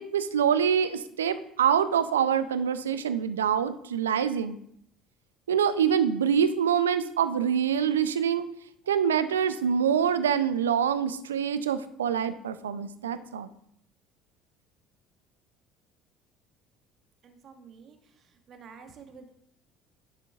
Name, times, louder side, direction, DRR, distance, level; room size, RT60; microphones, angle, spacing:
voice 1, 0.0-4.6 5.5-8.5 8.9-13.5, right 8 dB, 80° right, 13 dB, 0.4 m, -25 dB
voice 2, 17.2-18.0 18.5-19.4, right 5 dB, 45° right, 6 dB, 1.2 m, -49 dB
11.0 x 6.6 x 2.4 m, 0.70 s
figure-of-eight pair, 60°, 0 cm